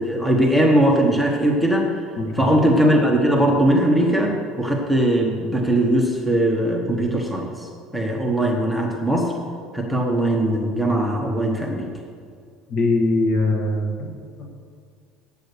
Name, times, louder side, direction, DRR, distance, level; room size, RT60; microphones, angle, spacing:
voice 1, 0.0-2.0 2.3-7.7 7.9-9.3 9.7-11.9, right 1 dB, ahead, -1 dB, 1.0 m, -20 dB
voice 2, 2.2-2.5 12.7-14.1 14.4-14.5, left 2 dB, 50° left, 2 dB, 1.6 m, -22 dB
8.4 x 8.1 x 6.7 m, 2.2 s
cardioid pair, 160°, 0 cm